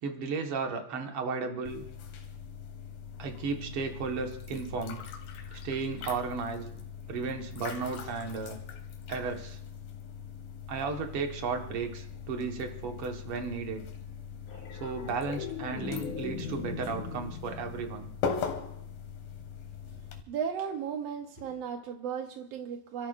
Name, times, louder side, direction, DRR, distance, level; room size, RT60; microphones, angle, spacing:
voice 1, 0.0-1.9 3.2-5.0 5.6-6.7 7.1-8.6 9.1-9.6 10.7-13.9 14.8-18.1, right 4 dB, 50° right, 4 dB, 1.9 m, -34 dB
sound 1, 1.6-20.2, left 6 dB, 90° left, 3.2 m, -41 dB
sound 2, 14.5-19.0 21.4-21.6, left 5 dB, 60° left, 5.6 m, -40 dB
voice 2, 20.3-23.1, right 7 dB, 80° right, 5 dB, 1.4 m, -35 dB
29.5 x 13.5 x 2.5 m, 0.78 s
omnidirectional pair, 4.1 m